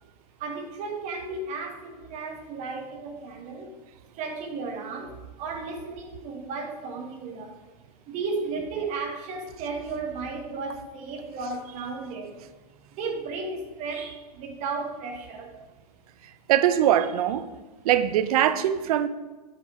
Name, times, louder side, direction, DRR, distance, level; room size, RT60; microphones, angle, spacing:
voice 1, 0.4-3.7 4.1-7.6 8.1-12.4 12.9-15.6, right 4 dB, 35° right, 4 dB, 1.4 m, -34 dB
voice 2, 16.5-17.4 17.8-19.1, right 11 dB, 60° right, 13 dB, 0.5 m, -22 dB
8.4 x 4.9 x 4.8 m, 1.2 s
hypercardioid pair, 135°, 21 cm